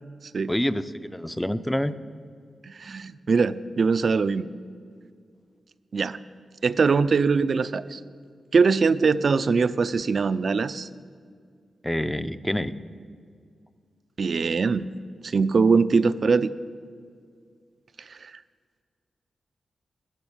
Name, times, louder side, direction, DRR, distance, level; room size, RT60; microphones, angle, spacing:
voice 1, 0.5-2.0 11.8-12.7, equal, 5° left, 13 dB, 0.5 m, -27 dB
voice 2, 2.6-4.5 5.9-6.2 6.6-8.0 8.5-10.9 14.2-14.9 15.2-16.5 18.1-18.3, right 4 dB, 55° right, 15 dB, 0.4 m, -22 dB
13.5 x 6.2 x 8.7 m, 2.1 s
cardioid pair, 75°, 0 cm